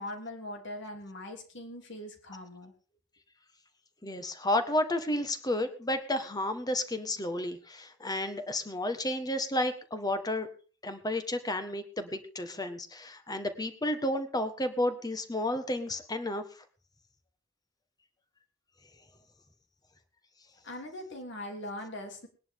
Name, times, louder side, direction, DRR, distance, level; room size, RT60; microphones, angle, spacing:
voice 1, 0.0-2.7 20.6-22.3, left 1 dB, 65° left, 4 dB, 3.3 m, -41 dB
voice 2, 4.0-10.5 10.8-16.4, left 1 dB, 20° left, 9 dB, 1.6 m, -32 dB
20.5 x 11.0 x 3.8 m, 0.37 s
head